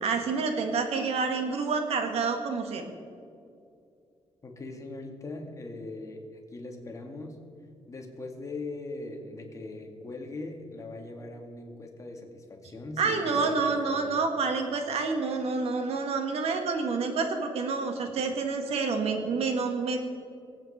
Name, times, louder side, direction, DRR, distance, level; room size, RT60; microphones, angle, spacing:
voice 1, 0.0-2.8 13.0-20.0, right 4 dB, 70° right, 5 dB, 1.8 m, -28 dB
voice 2, 4.4-6.2 6.5-7.4 7.9-14.2, left 2 dB, 30° left, 2 dB, 2.1 m, -40 dB
22.5 x 8.7 x 4.3 m, 2.5 s
cardioid pair, 115°, 11 cm